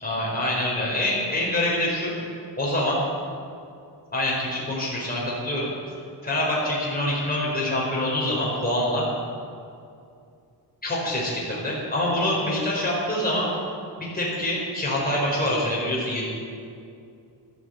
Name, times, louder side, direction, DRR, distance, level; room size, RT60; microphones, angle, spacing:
voice 1, 0.0-2.1 2.6-3.0 4.1-5.7 6.2-9.0 10.8-13.5 14.0-16.3, left 1 dB, 20° left, -5 dB, 4.6 m, -25 dB
13.0 x 13.0 x 7.9 m, 2.5 s
wide cardioid pair, 175°, 43 cm